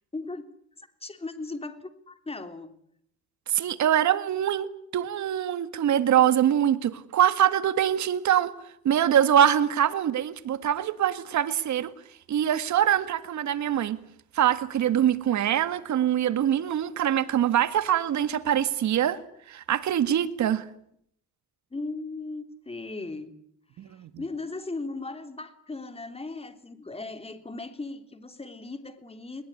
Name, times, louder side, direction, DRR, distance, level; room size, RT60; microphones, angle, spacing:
voice 1, 0.1-0.5 0.8-2.7 21.7-23.3 23.7-29.4, left 3 dB, 20° left, 8 dB, 3.4 m, -37 dB
voice 2, 3.5-8.5 8.8-11.9 12.3-14.0 14.3-19.2 19.5-20.6 23.8-24.1, right 10 dB, 70° right, 12 dB, 1.9 m, -24 dB
21.5 x 20.5 x 9.9 m, 0.71 s
cardioid pair, 90°, 30 cm